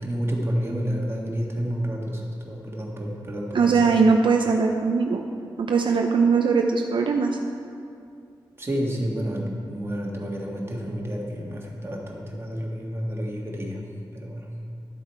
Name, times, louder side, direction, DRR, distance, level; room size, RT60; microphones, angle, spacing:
voice 1, 0.0-3.9 8.6-13.8 14.1-14.5, equal, 30° right, -2 dB, 1.6 m, -30 dB
voice 2, 3.5-5.2 5.6-7.4, right 5 dB, 70° right, 3 dB, 0.6 m, -20 dB
11.5 x 7.4 x 4.5 m, 2.5 s
wide cardioid pair, 115°, 9 cm